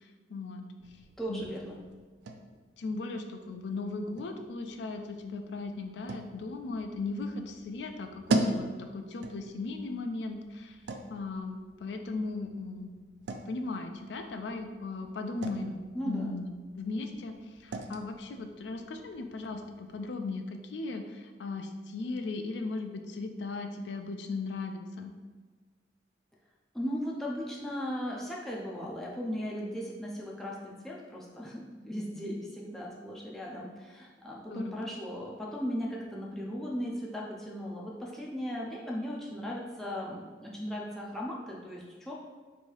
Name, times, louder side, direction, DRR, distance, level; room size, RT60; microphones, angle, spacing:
voice 1, 0.3-0.6 1.3-1.5 2.8-10.8 11.1-12.9 13.5-16.5 16.8-17.4 17.6-25.1 34.5-34.8, left 3 dB, 75° left, 6 dB, 0.4 m, -37 dB
sound 1, 0.8-20.4, right 2 dB, 75° right, 0.3 m, -40 dB
voice 2, 1.2-1.8 15.9-16.4 26.7-42.1, equal, ahead, -4 dB, 0.4 m, -37 dB
3.2 x 2.7 x 4.5 m, 1.4 s
head